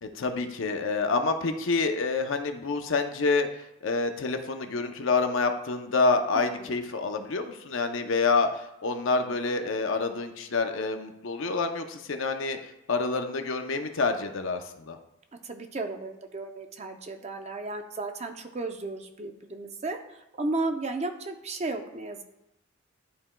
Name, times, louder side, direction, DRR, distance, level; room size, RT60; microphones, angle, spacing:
voice 1, 0.0-3.5 3.8-12.6 12.9-15.0, left 3 dB, 70° left, 7 dB, 0.6 m, -27 dB
voice 2, 6.3-6.7 15.4-22.2, right 2 dB, 30° right, 6 dB, 0.5 m, -34 dB
11.0 x 4.3 x 2.2 m, 0.87 s
head